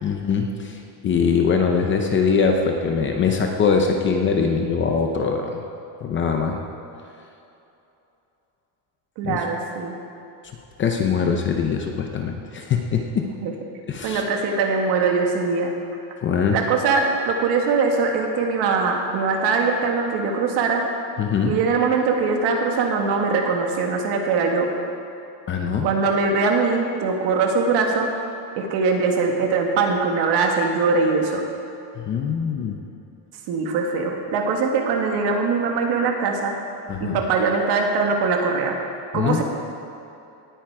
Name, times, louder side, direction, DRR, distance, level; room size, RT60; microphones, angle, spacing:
voice 1, 0.0-5.6 6.0-6.6 9.2-9.4 10.8-13.3 13.9-14.2 16.2-16.6 21.2-21.5 25.5-25.9 32.0-32.8 36.9-37.2 39.1-39.4, left 6 dB, 25° left, 3 dB, 0.6 m, -22 dB
voice 2, 9.2-10.0 13.3-13.5 14.0-15.7 16.5-20.8 21.4-24.7 25.8-28.1 28.6-31.5 33.5-36.6 37.0-38.8 39.1-39.4, right 4 dB, 55° right, 2 dB, 1.8 m, -22 dB
18.5 x 9.1 x 4.7 m, 2.8 s
cardioid pair, 175°, 48 cm